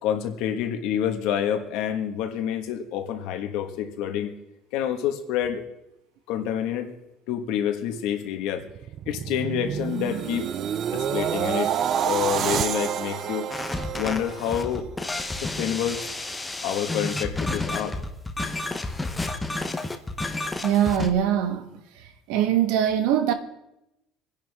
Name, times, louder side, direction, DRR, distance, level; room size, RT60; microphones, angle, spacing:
voice 1, 0.0-4.3 4.7-5.6 6.3-6.9 7.3-8.6 9.1-10.5 10.9-11.7 12.0-13.5 14.0-14.9 15.4-16.0 16.6-18.0, left 9 dB, 70° left, 1.7 m, -28 dB
sound 1, 8.6-14.9 15.3-15.6, right 9 dB, 40° right, 0.4 m, -28 dB
sound 2, 13.5-21.1, left 2 dB, 10° left, 0.9 m, -31 dB
voice 2, 20.6-21.7 22.3-23.3, right 10 dB, 85° right, 1.4 m, -22 dB
26.0 x 10.5 x 3.6 m
cardioid pair, 160°, 0 cm